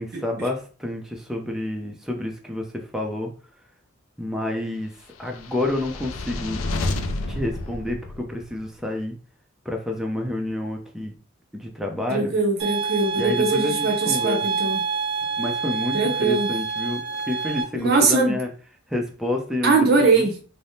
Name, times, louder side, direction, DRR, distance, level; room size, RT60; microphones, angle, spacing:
voice 1, 0.0-3.3 4.2-4.9 5.2-6.6 7.3-9.1 9.7-11.1 11.5-12.3 13.1-14.4 15.4-18.5 18.9-20.4, left 1 dB, ahead, 0.4 m, -29 dB
sound 1, 5.3-8.7, left 2 dB, 80° left, 0.4 m, -30 dB
voice 2, 12.1-14.8 15.9-16.5 17.7-18.4 19.6-20.3, right 4 dB, 50° right, 0.6 m, -21 dB
sound 2, 12.6-17.6, right 5 dB, 85° right, 0.6 m, -27 dB
3.2 x 2.0 x 2.6 m
head